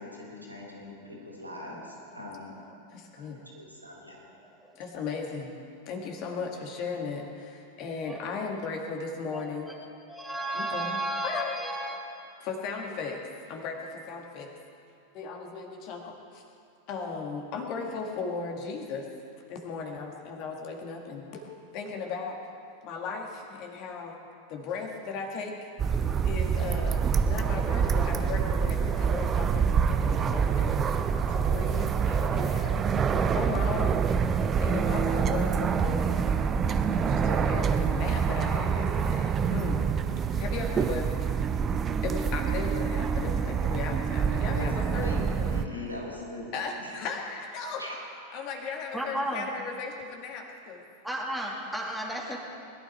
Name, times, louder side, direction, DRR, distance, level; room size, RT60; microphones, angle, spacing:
voice 1, 0.0-2.5 3.2-4.2 44.2-44.7 45.0-46.9 47.8-47.9 48.3-48.4, left 2 dB, 85° right, -4 dB, 4.1 m, -42 dB
voice 2, 2.9-3.4 4.8-5.6 5.9-9.7 10.5-11.7 12.4-13.2 13.5-14.5 15.1-16.4 16.9-19.1 19.5-22.4 22.8-24.2 24.5-25.6 25.8-30.8 31.3-34.0 34.6-36.7 36.9-39.9 40.4-41.5 42.0-45.5 46.5-47.8 48.3-50.8, left 4 dB, 40° left, 2 dB, 2.0 m, -36 dB
voice 3, 9.3-9.8 10.1-12.0 48.9-49.5 51.0-52.4, right 1 dB, ahead, -2 dB, 2.2 m, -33 dB
sound 1, 25.8-45.7, right 6 dB, 25° right, 0.6 m, -26 dB
21.0 x 12.0 x 4.5 m, 2.5 s
figure-of-eight pair, 90°, 0 cm